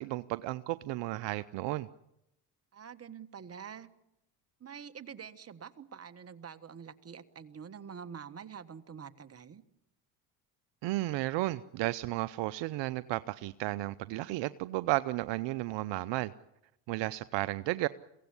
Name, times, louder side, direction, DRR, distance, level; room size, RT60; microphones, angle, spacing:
voice 1, 0.0-1.9 10.8-16.3 16.9-17.9, right 18 dB, 65° right, 15 dB, 0.8 m, -33 dB
voice 2, 2.7-3.9 4.6-9.6, right 7 dB, 30° right, 11 dB, 1.4 m, -46 dB
23.0 x 17.0 x 9.7 m, 0.85 s
supercardioid pair, 80°, 47 cm